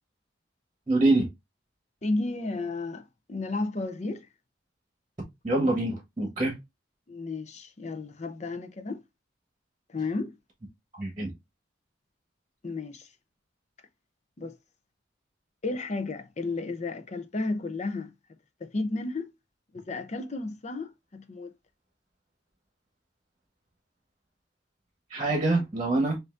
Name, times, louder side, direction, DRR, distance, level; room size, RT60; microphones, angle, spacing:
voice 1, 0.9-1.3 5.4-6.5 10.9-11.3 25.1-26.2, right 2 dB, 25° right, 1.1 m, -25 dB
voice 2, 2.0-3.0 3.3-4.3 7.1-9.0 9.9-10.3 12.6-13.1 14.4-14.6 15.6-18.1 18.6-19.3 19.7-21.5, left 3 dB, 35° left, 0.6 m, -33 dB
5.4 x 2.6 x 2.4 m
head